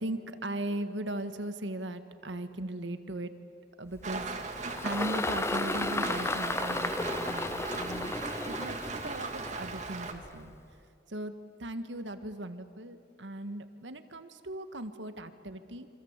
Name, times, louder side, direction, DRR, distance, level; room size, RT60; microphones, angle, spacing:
voice 1, 0.0-3.3 3.8-4.3 4.6-8.2 8.4-10.5 11.1-11.3 11.6-15.9, right 1 dB, 85° right, 9 dB, 1.7 m, -38 dB
Engine, 3.9-10.5, left 2 dB, 15° left, 0.8 m, -34 dB
Rain, 4.0-10.1, right 3 dB, 40° right, 2.1 m, -38 dB
27.0 x 25.5 x 8.2 m, 2.6 s
head